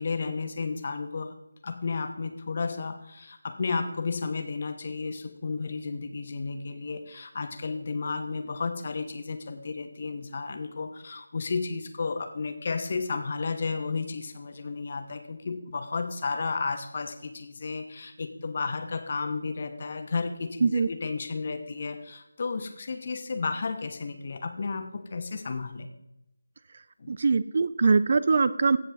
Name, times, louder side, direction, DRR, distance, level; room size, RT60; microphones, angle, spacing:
voice 1, 0.0-1.3 1.6-25.9 27.0-27.2, left 4 dB, 40° left, 7 dB, 1.2 m, -33 dB
voice 2, 27.1-28.8, right 4 dB, 40° right, 15 dB, 0.5 m, -22 dB
15.5 x 7.7 x 3.5 m, 0.86 s
figure-of-eight pair, 160°, 0 cm